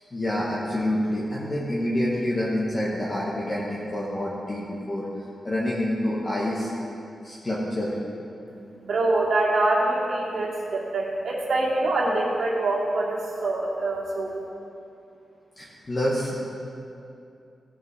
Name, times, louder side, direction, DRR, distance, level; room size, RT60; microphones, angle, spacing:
voice 1, 0.1-5.1 5.4-6.7 7.2-8.0 15.6-16.3, left 1 dB, 25° left, -6 dB, 1.3 m, -27 dB
voice 2, 8.8-14.4, right 2 dB, 70° right, -4 dB, 2.3 m, -25 dB
16.5 x 6.4 x 4.7 m, 2.7 s
wide cardioid pair, 150°, 0 cm